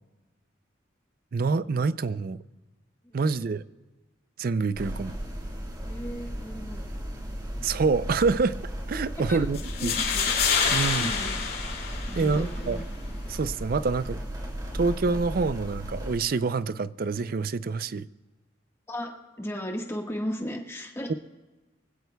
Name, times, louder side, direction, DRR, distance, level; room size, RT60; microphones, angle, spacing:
voice 1, 1.3-2.4 3.1-3.6 4.4-5.1 7.6-8.6 8.9-9.9 10.7-11.1 12.2-12.8 13.3-14.2 14.7-18.1 21.1-21.2, right 4 dB, 50° right, 0.4 m, -26 dB
voice 2, 3.0-3.5 5.9-7.1 9.3-9.5 9.8-10.3 11.0-11.3 12.1-12.8 18.9-21.1, equal, 15° left, 1.5 m, -36 dB
sound 1, 4.7-16.2, equal, 20° right, 1.6 m, -35 dB
sound 2, 9.5-12.6, left 6 dB, 50° left, 2.5 m, -27 dB
24.0 x 16.0 x 2.3 m
head